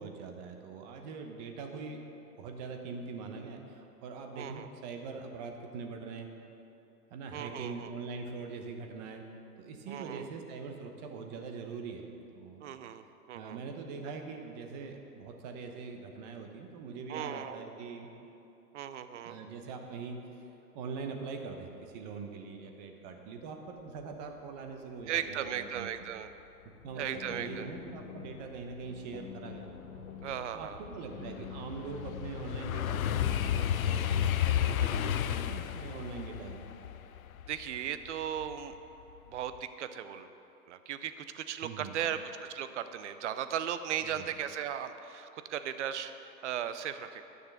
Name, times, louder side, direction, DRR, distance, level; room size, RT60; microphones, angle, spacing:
voice 1, 0.0-2.0 2.4-6.3 7.1-9.2 9.6-12.0 12.3-12.6 13.3-18.1 19.2-20.5 20.7-25.9 26.8-29.7 30.5-36.6 41.6-42.0 44.0-44.2, right 4 dB, 25° right, 4 dB, 1.0 m, -42 dB
voice 2, 4.3-4.7 7.3-7.9 9.9-10.3 12.6-13.6 17.1-17.7 18.7-19.4 25.1-26.3 27.0-27.7 30.2-30.8 37.5-38.8 39.3-40.3 40.7-42.2 42.5-47.2, right 9 dB, 45° right, 11 dB, 0.6 m, -37 dB
sound 1, 26.7-34.5, left 7 dB, 15° left, 0.8 m, -47 dB
sound 2, 29.1-29.2 29.7-38.8 39.2-39.6, left 10 dB, 55° left, 0.6 m, -32 dB
11.5 x 6.7 x 6.6 m, 2.9 s
hypercardioid pair, 140°, 50 cm